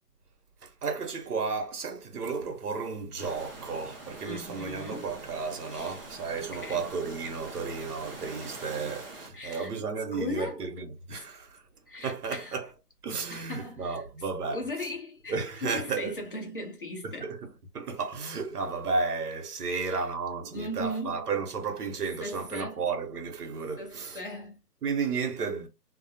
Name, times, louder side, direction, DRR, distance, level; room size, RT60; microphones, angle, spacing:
voice 1, 0.6-11.6 12.0-12.7 13.0-14.6 15.3-16.1 17.0-17.4 17.7-24.2 24.8-25.7, right 4 dB, 70° right, 0.9 m, -33 dB
sound 1, 3.2-9.3, right 2 dB, 40° right, 0.5 m, -44 dB
voice 2, 4.2-5.1 5.7-6.1 6.4-6.9 9.3-9.7 10.1-10.6 11.1-11.3 11.9-12.6 13.3-14.0 14.5-17.3 19.7-20.0 20.5-21.3 22.2-22.8 23.8-24.6, left 1 dB, 35° left, 0.5 m, -38 dB
2.2 x 2.1 x 2.7 m
hypercardioid pair, 165°, 48 cm